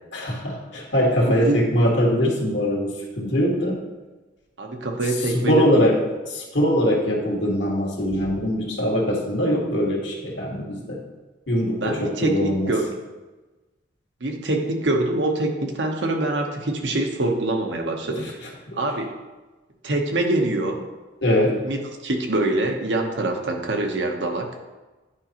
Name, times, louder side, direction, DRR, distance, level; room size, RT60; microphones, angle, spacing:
voice 1, 0.1-3.8 5.3-5.9 6.3-11.0 11.5-12.7 18.7-18.8 21.2-21.6, equal, 75° left, -1 dB, 1.6 m, -22 dB
voice 2, 4.6-5.8 11.7-12.3 12.7-12.8 14.2-18.4 18.7-19.1 19.8-20.8 21.6-24.5, right 2 dB, 75° right, 3 dB, 0.9 m, -24 dB
9.7 x 5.1 x 2.9 m, 1.2 s
head